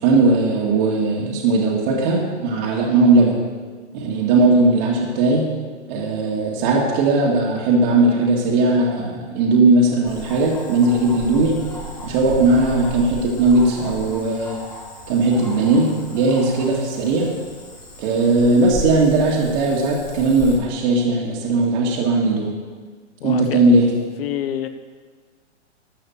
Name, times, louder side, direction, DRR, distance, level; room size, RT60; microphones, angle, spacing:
voice 1, 0.0-3.4 3.9-5.5 5.9-11.6 12.0-14.6 15.1-17.3 18.0-22.5 23.2-23.9, right 2 dB, 40° right, -2 dB, 2.1 m, -18 dB
Cricket / Frog, 10.0-20.6, left 1 dB, 10° left, 2.8 m, -35 dB
voice 2, 23.2-23.6 24.2-24.7, left 11 dB, 55° left, 10 dB, 1.1 m, -26 dB
13.0 x 5.7 x 7.7 m, 1.5 s
hypercardioid pair, 140°, 36 cm